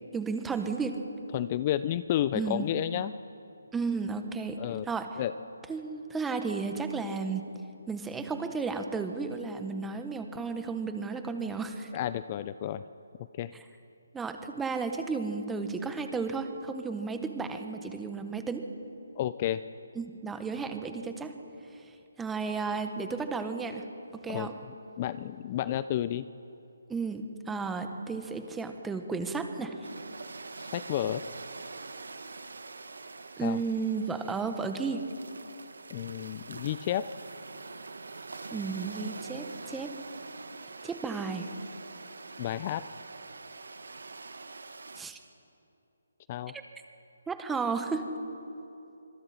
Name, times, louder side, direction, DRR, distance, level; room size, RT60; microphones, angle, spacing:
voice 1, 0.1-1.0 2.3-2.7 3.7-4.6 4.9-5.2 5.7-7.5 7.9-11.9 13.5-13.6 14.1-18.7 19.9-21.3 22.2-23.8 24.2-24.5 26.9-29.8 33.4-35.1 38.5-39.9 40.8-41.5 45.0-45.2 47.3-48.1, right 4 dB, 5° right, 6 dB, 1.3 m, -33 dB
voice 2, 1.3-3.1 4.6-4.9 5.2-5.3 11.9-12.8 13.4-13.5 19.2-19.6 24.3-24.5 25.0-26.3 30.6-31.2 33.4-33.6 35.9-37.1 42.4-42.8 46.3-46.5, left 12 dB, 30° left, 14 dB, 0.5 m, -31 dB
sound 1, 29.8-45.0, right 3 dB, 80° right, 1.4 m, -44 dB
26.0 x 22.5 x 4.4 m, 2.8 s
figure-of-eight pair, 155°, 0 cm